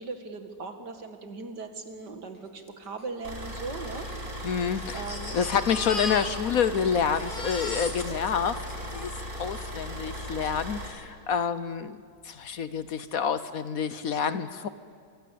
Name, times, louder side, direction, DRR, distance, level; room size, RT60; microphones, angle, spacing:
voice 1, 0.0-4.5 4.9-5.4, right 3 dB, 70° right, 7 dB, 2.7 m, -39 dB
Crying sobbing, 2.7-2.8 3.0-3.1 3.8-6.7 7.0-9.6 10.4-10.5 10.9-11.0, left 2 dB, 30° left, 2.4 m, -38 dB
sound 1, 3.2-10.9, equal, 55° right, 5.7 m, -37 dB
voice 2, 4.4-5.0 5.3-9.1 9.4-12.0 12.2-14.7, left 7 dB, 60° left, 13 dB, 1.2 m, -28 dB
26.5 x 23.5 x 8.6 m, 2.2 s
omnidirectional pair, 1.9 m